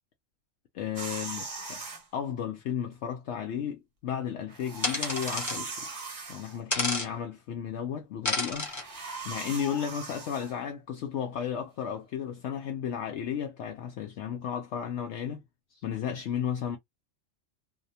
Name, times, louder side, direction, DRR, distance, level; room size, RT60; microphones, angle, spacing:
voice 1, 0.7-1.8 2.1-5.9 6.3-8.7 9.2-15.4 15.7-16.8, left 8 dB, 70° left, 0.8 m, -34 dB
sound 1, 1.0-2.0 4.5-6.6 8.5-10.5, right 3 dB, 45° right, 1.3 m, -39 dB
sound 2, 4.8-5.6 6.7-7.1 8.2-8.8, left 2 dB, 20° left, 0.6 m, -30 dB
2.7 x 2.1 x 2.7 m
omnidirectional pair, 1.3 m